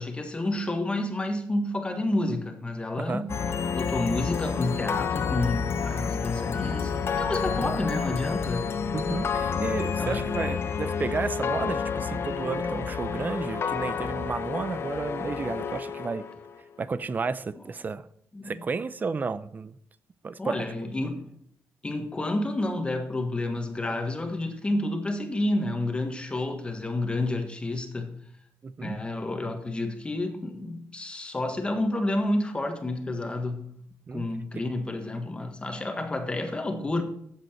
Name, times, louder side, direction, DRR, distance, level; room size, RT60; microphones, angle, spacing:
voice 1, 0.0-3.3 3.7-8.8 10.0-10.3 18.3-18.6 20.4-21.3 21.8-28.1 28.8-33.7 34.1-37.0, left 2 dB, 20° left, 1.6 m, -30 dB
sound 1, 3.3-16.6, left 6 dB, 50° left, 1.0 m, -29 dB
voice 2, 8.9-16.3 16.8-18.1 18.4-19.7 20.2-20.7 28.6-29.0 34.1-34.2 34.5-34.6, right 4 dB, 35° right, 0.6 m, -32 dB
14.5 x 7.9 x 4.4 m
cardioid pair, 120°, 5 cm